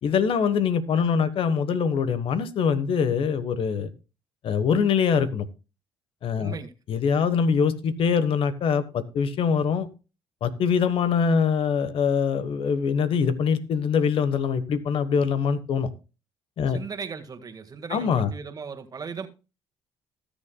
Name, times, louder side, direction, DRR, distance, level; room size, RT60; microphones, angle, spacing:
voice 1, 0.0-3.9 4.4-5.4 6.2-6.6 6.9-9.9 10.4-15.9 16.6-16.8 17.9-18.3, left 6 dB, 60° left, 13 dB, 1.3 m, -23 dB
voice 2, 6.4-6.7 16.7-19.3, right 5 dB, 40° right, 6 dB, 1.8 m, -37 dB
19.0 x 7.2 x 2.3 m, 0.31 s
supercardioid pair, 75°, 10 cm